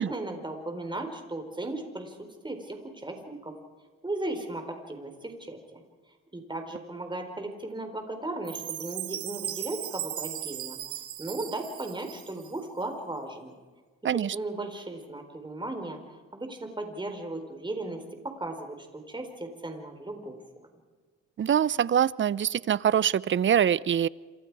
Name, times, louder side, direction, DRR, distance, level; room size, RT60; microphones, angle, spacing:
voice 1, 0.0-3.5 4.0-5.8 6.3-10.8 11.2-13.5 14.1-16.0 16.3-18.0 18.2-20.4, right 2 dB, 15° right, 5 dB, 4.2 m, -36 dB
Chime, 8.4-12.6, right 11 dB, 70° right, 1.5 m, -37 dB
voice 2, 14.0-14.4 21.4-24.1, right 9 dB, 40° right, 21 dB, 0.6 m, -24 dB
27.5 x 26.5 x 4.8 m, 1.4 s
cardioid pair, 90°, 30 cm